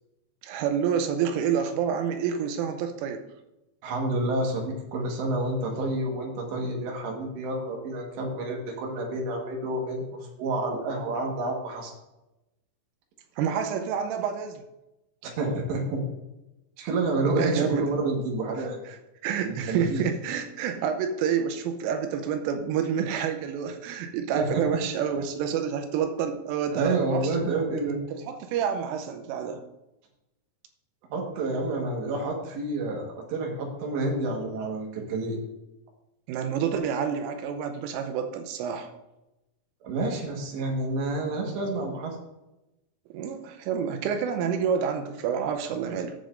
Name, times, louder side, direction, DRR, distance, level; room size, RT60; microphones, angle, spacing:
voice 1, 0.4-3.2 13.4-14.6 17.4-17.9 18.9-19.0 19.2-27.3 28.1-29.6 36.3-38.9 43.1-46.2, right 7 dB, 85° right, 6 dB, 3.3 m, -28 dB
voice 2, 3.8-11.9 15.2-16.0 16.8-18.8 19.4-20.0 24.3-24.6 26.7-28.0 31.1-35.4 39.8-42.2, right 2 dB, 70° right, 0 dB, 3.5 m, -29 dB
15.5 x 6.9 x 2.6 m, 0.94 s
omnidirectional pair, 5.7 m